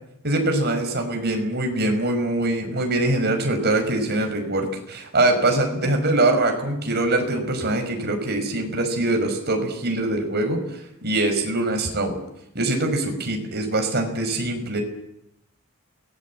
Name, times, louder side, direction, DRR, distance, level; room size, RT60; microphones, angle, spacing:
voice 1, 0.2-12.2 12.5-14.8, right 2 dB, 45° right, 5 dB, 5.6 m, -23 dB
28.0 x 20.0 x 8.8 m, 0.83 s
head